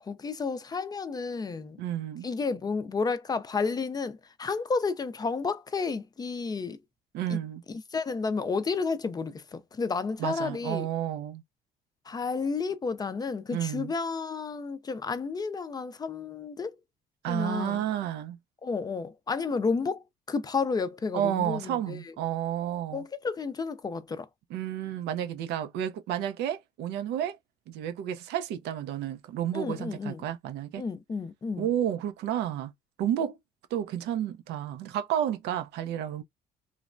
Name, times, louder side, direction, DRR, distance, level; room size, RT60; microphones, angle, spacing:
voice 1, 0.0-1.8 2.2-6.8 7.3-7.4 7.7-10.9 12.1-16.8 17.3-17.9 18.6-22.0 22.9-24.3 29.5-30.3 30.7-31.7, left 4 dB, 25° left, 0.4 m, -31 dB
voice 2, 1.8-2.3 7.1-7.6 10.2-11.4 13.5-13.9 17.2-18.4 21.1-23.0 24.5-27.4 27.7-30.8 31.6-32.7 33.0-33.4 33.7-36.2, right 10 dB, 85° right, 0.6 m, -31 dB
3.1 x 2.1 x 2.5 m
cardioid pair, 110°, 17 cm